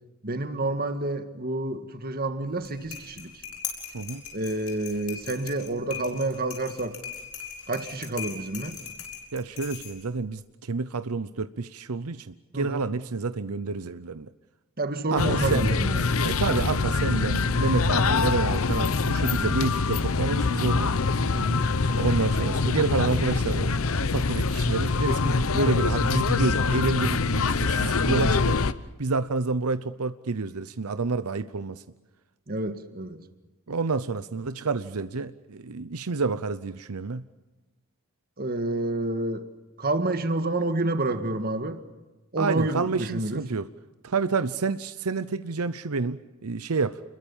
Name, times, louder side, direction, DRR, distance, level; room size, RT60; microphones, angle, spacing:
voice 1, 0.2-3.4 4.3-7.0 7.7-8.8 12.5-12.9 14.8-16.2 21.3-21.7 32.5-33.2 38.4-39.5 39.8-41.8 42.3-43.4, right 2 dB, 45° right, 1.8 m, -29 dB
sound 1, 2.5-10.2, left 7 dB, 90° left, 6.6 m, -40 dB
voice 2, 9.3-14.3 15.1-15.8 16.2-20.9 21.9-28.6 29.0-31.8 33.7-37.2 42.4-43.7 44.0-47.0, right 4 dB, 80° right, 0.8 m, -29 dB
sound 2, 15.2-28.7, left 4 dB, 70° left, 0.9 m, -24 dB
29.5 x 22.0 x 7.2 m
head